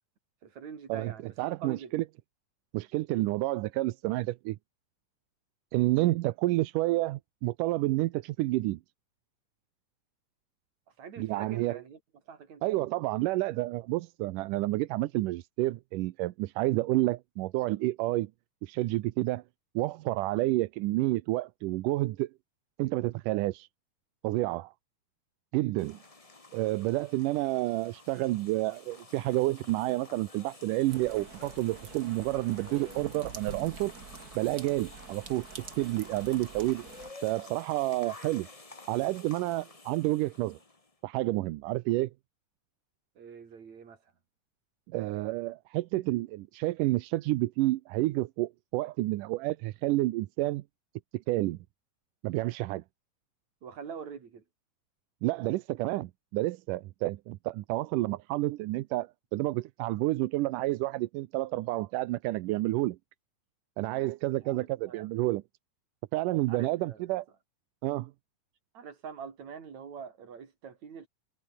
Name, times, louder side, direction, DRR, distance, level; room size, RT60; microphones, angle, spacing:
voice 1, 0.4-1.9 11.0-12.0 12.3-12.6 43.2-44.0 53.6-54.4 64.4-65.1 66.5-67.0 68.7-71.1, right 6 dB, 60° right, 4.5 m, -44 dB
voice 2, 1.4-2.0 2.7-4.6 5.7-8.8 11.2-11.8 12.6-18.3 18.6-19.4 19.8-22.3 22.8-23.7 24.2-24.7 25.5-26.0 26.5-33.9 34.4-35.5 35.8-36.8 37.2-38.5 38.9-40.6 41.0-42.1 44.9-50.6 51.1-51.6 52.2-52.8 55.2-63.0 63.8-65.4 66.1-67.3 67.8-68.1, right 18 dB, 85° right, 2.3 m, -29 dB
sound 1, 25.8-40.9, left 3 dB, 20° left, 0.9 m, -51 dB
sound 2, 30.9-37.1, right 6 dB, 35° right, 1.9 m, -47 dB
omnidirectional pair, 3.6 m